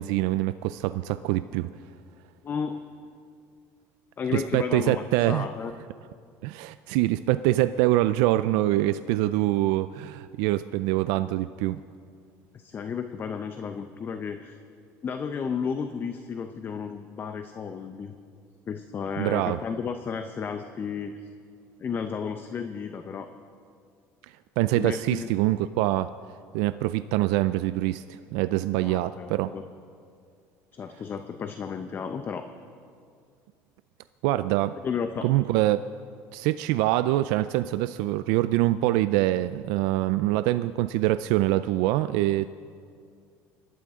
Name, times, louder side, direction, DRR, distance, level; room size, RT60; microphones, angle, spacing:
voice 1, 0.0-1.7 4.3-5.5 6.4-11.8 19.2-19.6 24.6-26.1 26.5-29.5 34.2-34.8 35.2-35.8 36.3-42.5, right 16 dB, 80° right, 12 dB, 0.4 m, -24 dB
voice 2, 2.4-2.8 4.2-5.7 12.5-14.6 15.0-18.1 18.7-21.1 21.8-23.3 24.7-25.3 28.8-29.6 30.7-32.5 34.8-35.3, left 6 dB, 35° left, 8 dB, 0.7 m, -33 dB
26.5 x 12.0 x 3.7 m, 2.3 s
cardioid pair, 120°, 7 cm